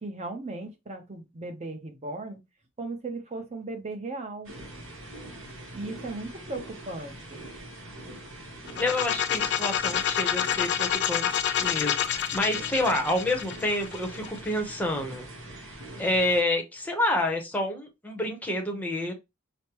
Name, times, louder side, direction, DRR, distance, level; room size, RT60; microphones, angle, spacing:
voice 1, 0.0-2.4 2.8-4.5 5.7-7.4, right 2 dB, 30° right, 0.8 m, -37 dB
sound 1, 4.4-16.4, right 1 dB, 65° right, 1.2 m, -43 dB
sound 2, 8.7-14.5, left 9 dB, 55° left, 0.5 m, -28 dB
voice 2, 8.8-15.3 16.0-19.1, left 1 dB, 10° left, 0.8 m, -28 dB
5.1 x 2.1 x 2.9 m
head